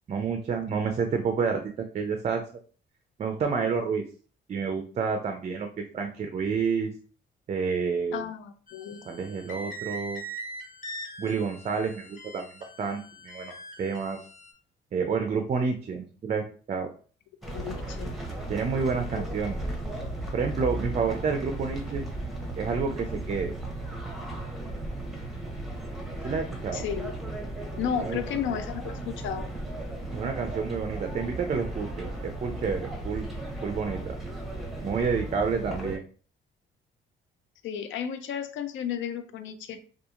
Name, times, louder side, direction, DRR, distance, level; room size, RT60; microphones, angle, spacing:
voice 1, 0.1-2.4 3.2-4.0 4.5-6.9 7.5-8.2 9.1-10.2 11.2-13.5 13.8-14.2 14.9-16.9 18.5-19.6 20.3-22.0 22.6-23.5 26.2-26.8 28.0-28.2 30.1-33.2 33.6-34.1 34.8-36.0, right 5 dB, 35° right, 5 dB, 0.4 m, -29 dB
voice 2, 8.1-9.0 17.5-18.1 19.1-19.3 26.7-27.1 27.8-29.5 37.6-39.8, left 8 dB, 75° left, 10 dB, 0.4 m, -33 dB
sound 1, 8.7-14.5, right 1 dB, 40° left, 0.8 m, -42 dB
sound 2, 17.4-36.0, right 1 dB, ahead, 0.7 m, -35 dB
2.8 x 2.4 x 2.4 m, 0.41 s
cardioid pair, 90°, 20 cm